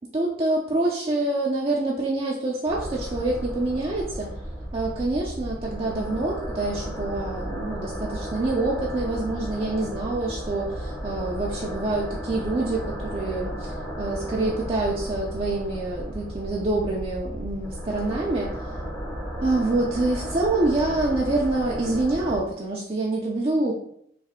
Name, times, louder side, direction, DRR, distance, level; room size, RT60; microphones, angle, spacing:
voice 1, 0.1-4.3 4.7-18.5 19.4-23.7, right 2 dB, 30° right, -3 dB, 0.4 m, -26 dB
sound 1, 2.7-22.4, equal, 15° left, 0.6 m, -34 dB
3.3 x 2.6 x 3.5 m, 0.70 s
head